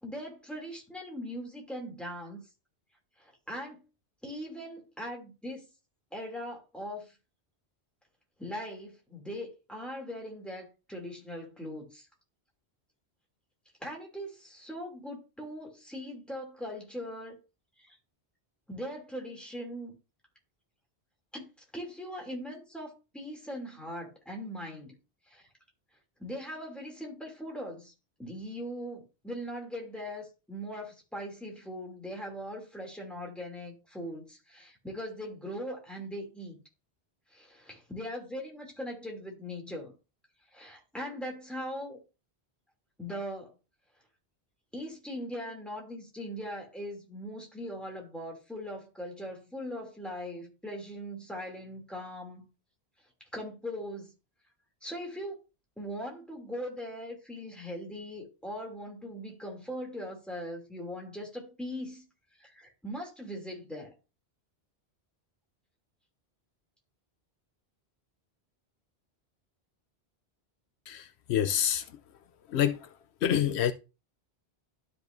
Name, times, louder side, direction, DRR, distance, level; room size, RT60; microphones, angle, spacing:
voice 1, 0.0-2.4 3.2-3.8 4.2-5.7 6.1-7.1 8.4-12.1 13.8-17.4 17.8-18.0 18.7-20.0 21.3-21.5 21.7-24.9 25.3-25.5 26.2-27.9 28.2-36.6 37.3-39.9 40.5-42.0 43.0-43.5 44.7-52.5 53.3-54.1 54.8-55.4 55.8-62.0 62.4-63.9, equal, ahead, 2.6 m, -40 dB
voice 2, 71.3-71.8 72.5-72.8 73.2-73.7, left 10 dB, 85° left, 0.9 m, -26 dB
12.0 x 5.5 x 2.6 m
omnidirectional pair, 1.1 m